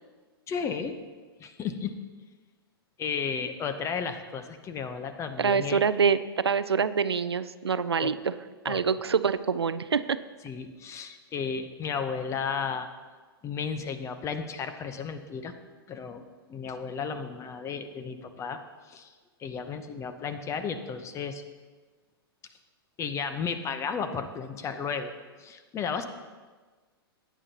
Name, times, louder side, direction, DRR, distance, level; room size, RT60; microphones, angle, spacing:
voice 1, 0.5-1.0 1.4-1.9 3.0-5.8 8.0-8.2 8.7-8.9 10.4-12.9 13.4-15.5 15.9-18.6 18.9-19.1 19.4-21.4 23.0-25.1 25.4-26.0, left 6 dB, 20° left, 9 dB, 0.8 m, -33 dB
voice 2, 5.4-8.4 8.6-10.2, right 6 dB, 85° right, 14 dB, 0.4 m, -26 dB
16.0 x 9.3 x 2.9 m, 1.4 s
figure-of-eight pair, 105°, 13 cm